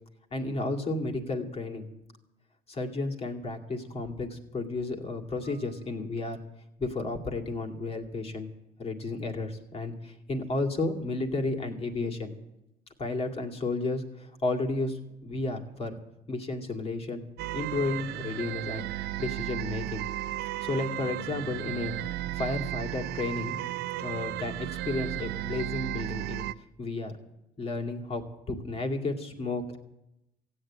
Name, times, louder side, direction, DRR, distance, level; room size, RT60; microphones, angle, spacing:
voice 1, 0.3-1.9 2.7-6.4 6.8-8.5 8.8-12.3 13.0-16.0 16.3-17.2 17.5-20.0 20.6-22.0 22.3-23.6 24.0-26.5 26.8-27.1 27.6-29.8, left 2 dB, 35° left, 3 dB, 2.2 m, -32 dB
sound 1, 17.4-26.5, right 14 dB, 75° right, 0.5 m, -34 dB
15.5 x 9.1 x 8.7 m, 0.89 s
cardioid pair, 110°, 17 cm